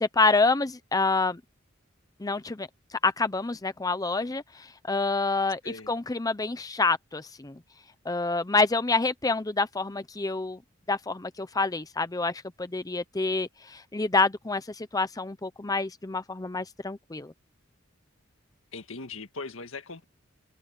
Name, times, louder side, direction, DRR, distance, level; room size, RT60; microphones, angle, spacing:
voice 1, 0.0-1.4 2.2-5.6 5.9-7.6 8.0-10.6 10.9-17.3, left 3 dB, 20° left, 0.7 m, -27 dB
voice 2, 5.6-6.0 18.7-20.0, left 3 dB, 80° left, 1.8 m, -39 dB
open air
head